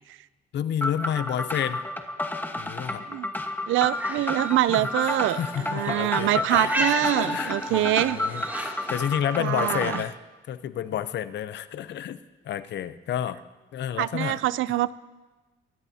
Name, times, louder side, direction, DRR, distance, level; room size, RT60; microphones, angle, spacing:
voice 1, 0.5-1.8 2.6-3.0 4.7-10.2 10.5-12.2 12.4-13.4 13.7-14.4, left 10 dB, 65° left, 13 dB, 0.7 m, -30 dB
sound 1, 0.8-10.0, left 1 dB, 10° left, 1.2 m, -31 dB
voice 2, 3.7-5.4 5.7-8.6 9.4-10.0 14.0-14.9, right 15 dB, 80° right, 18 dB, 0.4 m, -25 dB
sound 2, 3.9-9.2, right 1 dB, 10° right, 2.7 m, -35 dB
23.5 x 16.5 x 2.8 m, 1.2 s
cardioid pair, 90°, 20 cm